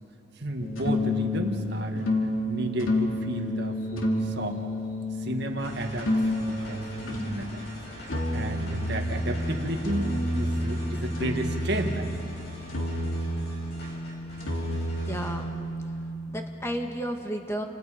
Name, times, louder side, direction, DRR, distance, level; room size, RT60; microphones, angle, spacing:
voice 1, 0.4-2.1 2.5-4.6 5.2-6.1 6.5-7.6 8.3-12.3, right 1 dB, 55° right, 4 dB, 1.9 m, -32 dB
sound 1, 0.6-7.3 8.1-16.1, left 1 dB, 75° left, 3.0 m, -30 dB
sound 2, 5.6-15.4, equal, 50° left, 7.7 m, -44 dB
voice 2, 15.1-15.5 16.3-17.6, equal, 15° left, 3 dB, 1.7 m, -32 dB
29.5 x 26.0 x 5.1 m, 2.8 s
head